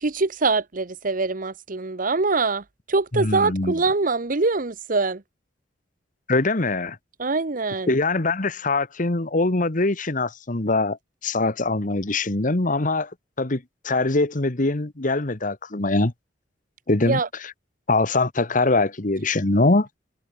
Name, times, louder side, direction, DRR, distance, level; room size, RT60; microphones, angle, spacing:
voice 1, 0.0-5.2 7.2-7.9 17.0-17.3, right 3 dB, 50° right, 1.1 m, -24 dB
voice 2, 3.1-3.8 6.3-7.0 7.9-11.0 11.2-13.1 13.4-16.1 16.9-17.5 17.9-19.9, left 2 dB, 50° left, 1.5 m, -23 dB
head